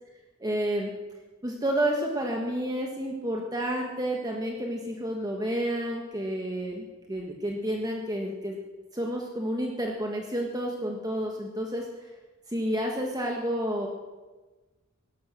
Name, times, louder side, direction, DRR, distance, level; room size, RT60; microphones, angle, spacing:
voice 1, 0.4-0.9 1.4-8.6 8.9-11.9 12.5-13.9, right 1 dB, 20° right, 0 dB, 1.6 m, -30 dB
17.0 x 13.5 x 6.2 m, 1.2 s
head